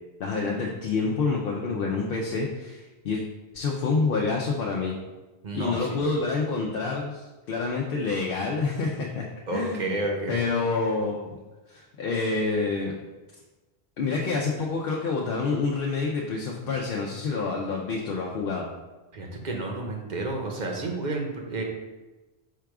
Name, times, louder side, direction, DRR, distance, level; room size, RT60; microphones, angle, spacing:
voice 1, 0.2-3.2 3.5-4.9 5.5-10.0 10.3-11.4 11.7-12.9 14.0-18.7, left 4 dB, 65° left, -1 dB, 0.7 m, -28 dB
voice 2, 5.4-6.0 9.5-10.4 19.1-21.6, right 2 dB, 50° right, 1 dB, 0.7 m, -31 dB
4.7 x 2.3 x 4.7 m, 1.1 s
omnidirectional pair, 1.1 m